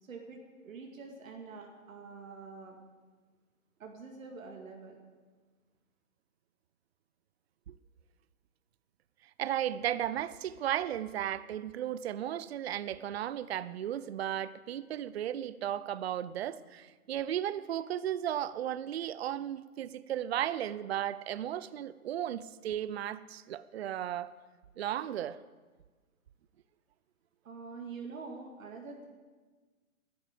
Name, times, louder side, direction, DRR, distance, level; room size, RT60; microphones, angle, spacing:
voice 1, 0.0-2.8 3.8-5.0 27.4-29.1, right 4 dB, 70° right, 1 dB, 2.4 m, -46 dB
voice 2, 9.4-24.3 24.8-25.4, right 11 dB, 50° right, 17 dB, 0.5 m, -35 dB
12.5 x 10.0 x 8.3 m, 1.4 s
hypercardioid pair, 150°, 42 cm